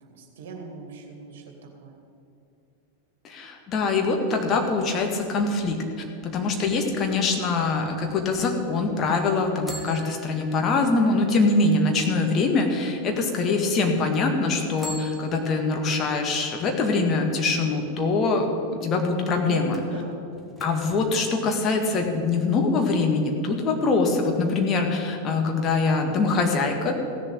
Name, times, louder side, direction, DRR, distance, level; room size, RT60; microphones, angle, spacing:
voice 1, 0.0-1.5 1.8-2.0 19.4-20.2, right 4 dB, 55° right, 2 dB, 2.4 m, -39 dB
voice 2, 3.2-5.8 6.2-18.5 18.7-19.8 20.6-27.0, left 3 dB, 30° left, 3 dB, 2.0 m, -23 dB
sound 1, 4.3-6.1 9.7-12.8 13.3-13.4 14.7-16.5 19.7-21.1 21.7-22.7 23.0-23.1, right 1 dB, ahead, 2.0 m, -44 dB
16.0 x 7.5 x 8.8 m, 2.7 s
figure-of-eight pair, 90°, 0 cm